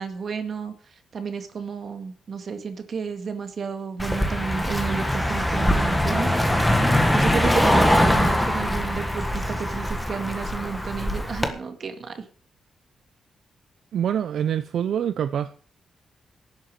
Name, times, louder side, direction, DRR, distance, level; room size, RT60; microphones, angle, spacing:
voice 1, 0.0-6.3 7.1-12.2, right 5 dB, 45° right, 2.0 m, -31 dB
Car passing by, 4.0-11.5, left 1 dB, 5° left, 1.6 m, -22 dB
voice 2, 13.9-15.5, right 9 dB, 65° right, 0.6 m, -25 dB
12.0 x 7.1 x 9.1 m
wide cardioid pair, 170°, 0 cm